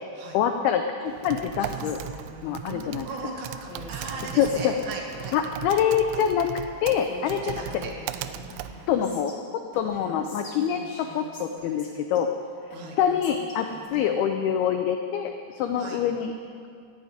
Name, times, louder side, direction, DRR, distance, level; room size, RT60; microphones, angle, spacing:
voice 1, 0.3-2.0 2.4-3.1 4.4-4.7 5.3-6.5 6.8-7.6 8.9-9.3 9.7-12.3 13.0-16.3, left 8 dB, 90° left, 6 dB, 2.2 m, -25 dB
Typing, 1.1-9.3, right 12 dB, 90° right, 3.0 m, -38 dB
Female speech woman speaking, 1.6-2.8 3.7-6.0 6.6-6.7 6.9-9.4 9.7-12.2 12.7-13.9, left 2 dB, 35° left, 2.1 m, -45 dB
voice 2, 2.6-5.4 7.4-8.3 12.7-13.0 13.9-14.1 15.7-16.0, right 3 dB, 50° right, 0 dB, 2.8 m, -38 dB
17.0 x 14.5 x 5.0 m, 2.3 s
omnidirectional pair, 5.3 m